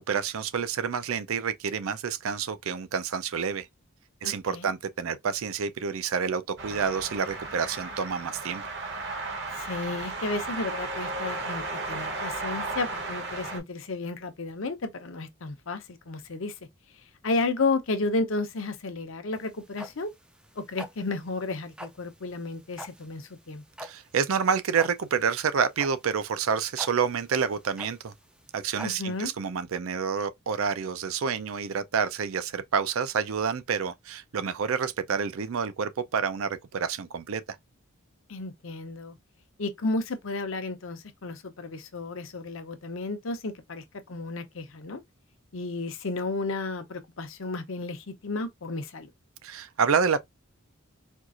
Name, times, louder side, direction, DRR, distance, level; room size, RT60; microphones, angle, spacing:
voice 1, 0.0-3.7 4.2-8.6 23.8-28.1 28.5-37.6 49.4-50.2, right 6 dB, 75° right, 0.5 m, -28 dB
voice 2, 4.2-4.7 9.5-16.6 17.2-20.1 20.6-23.6 28.8-29.3 38.3-39.2 39.6-45.0 45.5-49.1, left 3 dB, 65° left, 0.7 m, -32 dB
sound 1, 6.6-13.6, right 3 dB, 55° right, 0.9 m, -34 dB
sound 2, 19.3-29.3, equal, 5° right, 0.4 m, -45 dB
4.4 x 2.4 x 2.5 m
head